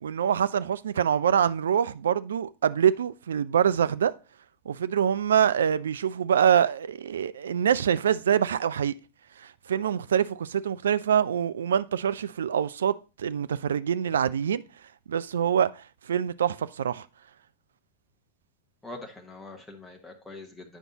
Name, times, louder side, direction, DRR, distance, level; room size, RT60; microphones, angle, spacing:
voice 1, 0.0-4.1 4.7-8.9 9.4-14.6 15.1-17.1, right 8 dB, 65° right, 0.3 m, -25 dB
voice 2, 18.8-20.8, left 2 dB, 10° left, 1.0 m, -43 dB
9.2 x 5.2 x 2.8 m
figure-of-eight pair, 90°, 0 cm